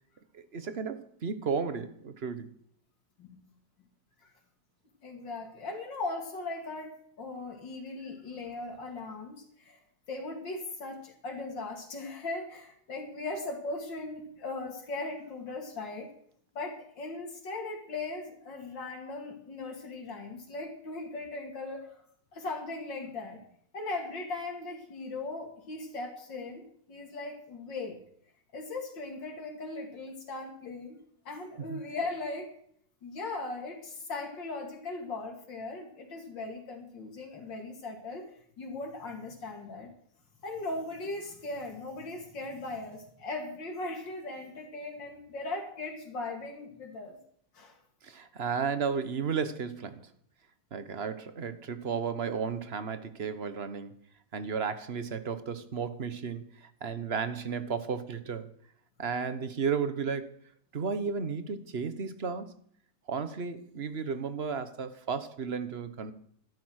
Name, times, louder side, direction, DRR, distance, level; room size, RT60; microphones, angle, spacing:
voice 1, 0.3-2.5 31.7-31.8 48.0-50.0 50.7-53.9 54.3-58.5 59.0-60.3 60.7-62.5 63.1-66.1, right 6 dB, 40° right, 1.2 m, -33 dB
voice 2, 5.0-9.8 10.1-16.1 16.5-22.0 22.3-23.4 23.7-26.6 26.9-28.0 28.5-31.0 31.2-32.5 33.0-38.3 38.6-39.9 40.4-47.2 47.5-47.8, left 3 dB, 80° left, 3.1 m, -38 dB
14.0 x 12.5 x 6.4 m
omnidirectional pair, 2.0 m